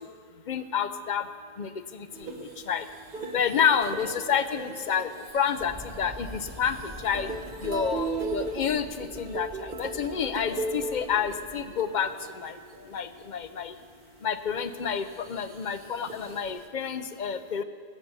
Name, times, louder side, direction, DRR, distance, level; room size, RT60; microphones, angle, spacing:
voice 1, 0.5-1.2 1.6-1.7 2.2-2.8 3.3-6.8 7.0-7.3 7.6-12.1 12.4-12.5 12.9-13.7 14.2-17.6, left 7 dB, 50° left, 11 dB, 0.7 m, -29 dB
sound 1, 2.1-13.4 14.0-14.1 14.5-16.7, right 3 dB, 50° right, 1.3 m, -38 dB
sound 2, 5.6-11.8, equal, 25° right, 1.0 m, -46 dB
17.5 x 8.4 x 6.7 m, 2.1 s
omnidirectional pair, 1.2 m